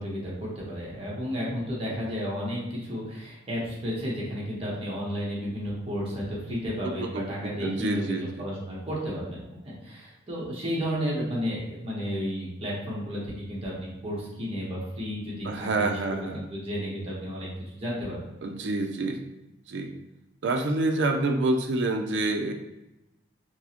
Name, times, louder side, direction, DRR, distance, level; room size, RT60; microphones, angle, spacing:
voice 1, 0.0-18.2, equal, 30° right, -6 dB, 1.0 m, -32 dB
voice 2, 6.8-8.3 15.4-16.4 18.4-19.2 19.7-19.9 20.4-22.5, right 2 dB, 60° right, 4 dB, 0.4 m, -27 dB
4.5 x 2.1 x 2.8 m, 0.95 s
head